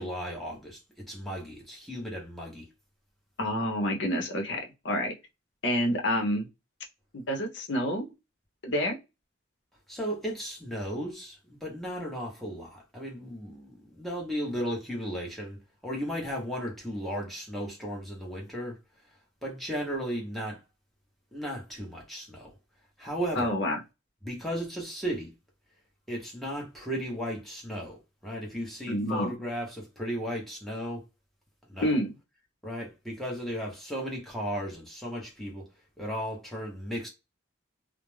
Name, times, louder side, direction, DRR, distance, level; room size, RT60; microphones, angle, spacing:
voice 1, 0.0-2.7 9.9-20.6 21.3-22.6 23.0-23.5 24.2-25.3 26.1-31.1 31.7-32.0 32.6-35.7 36.0-37.1, equal, ahead, 0.8 m, -35 dB
voice 2, 3.4-5.1 5.6-6.4 7.1-8.1 8.6-9.0 23.4-23.8 28.9-29.3 31.8-32.1, equal, 70° left, 0.7 m, -28 dB
2.4 x 2.1 x 3.1 m
head